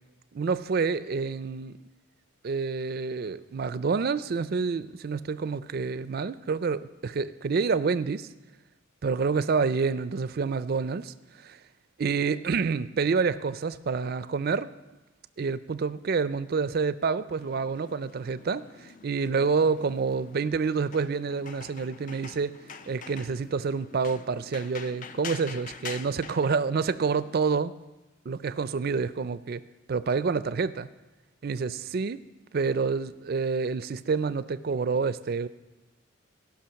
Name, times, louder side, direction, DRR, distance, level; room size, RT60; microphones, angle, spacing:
voice 1, 0.3-1.8 2.4-8.3 9.0-11.6 12.0-14.7 15.4-22.5 22.9-27.7 28.3-29.6 29.9-30.9 31.4-32.2 32.5-35.5, right 5 dB, 50° right, 15 dB, 0.4 m, -28 dB
sound 1, 17.3-27.4, left 6 dB, 40° left, 0.4 m, -45 dB
17.0 x 5.7 x 5.7 m, 1.1 s
head